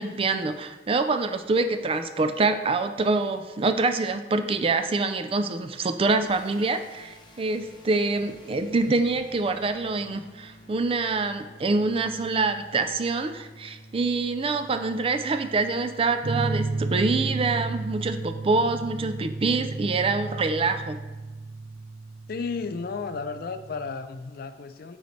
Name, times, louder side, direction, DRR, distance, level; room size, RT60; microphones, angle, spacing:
voice 1, 0.0-21.0, right 3 dB, 30° right, 9 dB, 0.4 m, -25 dB
sound 1, 6.3-20.6, equal, 25° left, 0.8 m, -49 dB
sound 2, 16.2-23.9, right 3 dB, 60° right, 0.8 m, -33 dB
voice 2, 22.3-25.0, left 4 dB, 55° left, 10 dB, 0.4 m, -33 dB
9.1 x 4.0 x 3.2 m, 1.2 s
head